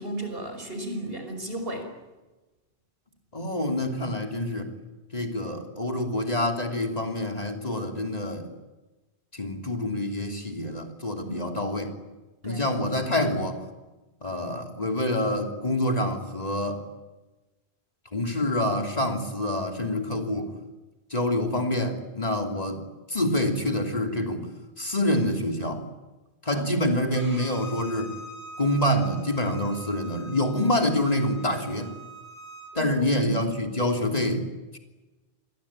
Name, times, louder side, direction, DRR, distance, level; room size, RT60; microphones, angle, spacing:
voice 1, 0.0-1.9 11.2-11.6 12.4-12.7 26.5-26.7 32.7-33.5, right 1 dB, 60° right, 6 dB, 5.8 m, -34 dB
voice 2, 3.3-4.7 5.1-8.5 9.3-11.9 12.4-13.6 14.2-16.8 18.1-20.5 21.1-22.8 23.1-24.5 24.8-25.8 26.4-28.1 28.6-31.9 32.7-34.5 34.7-34.8, left 1 dB, 35° left, 3 dB, 3.2 m, -26 dB
Bowed string instrument, 27.1-32.7, equal, 20° left, 6.2 m, -43 dB
29.5 x 22.0 x 8.8 m, 1.1 s
omnidirectional pair, 1.1 m